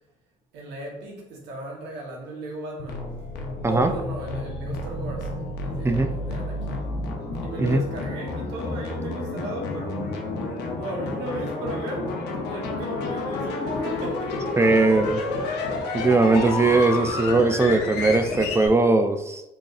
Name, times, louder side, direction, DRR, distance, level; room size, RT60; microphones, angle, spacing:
voice 1, 0.5-3.1 3.7-5.3 5.6-6.8 7.4-14.4, right 1 dB, 80° right, -2 dB, 1.2 m, -36 dB
sound 1, 2.8-18.7, left 2 dB, 75° left, 0.7 m, -30 dB
voice 2, 14.6-15.2 15.9-19.4, right 3 dB, 15° right, 7 dB, 0.4 m, -20 dB
3.8 x 3.4 x 2.5 m, 0.89 s
supercardioid pair, 75°, 18 cm